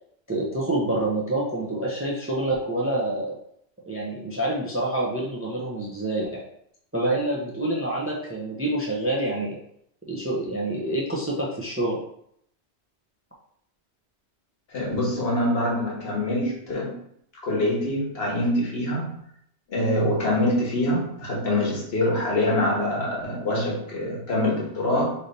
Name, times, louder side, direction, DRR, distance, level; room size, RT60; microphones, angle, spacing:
voice 1, 0.3-3.4 3.8-6.4 6.9-9.6 10.1-12.0, right 1 dB, 15° right, -3 dB, 0.5 m, -27 dB
voice 2, 14.7-16.9 17.4-19.1 19.7-25.1, left 1 dB, 70° left, -4 dB, 1.4 m, -24 dB
3.3 x 2.7 x 3.9 m, 0.70 s
omnidirectional pair, 1.1 m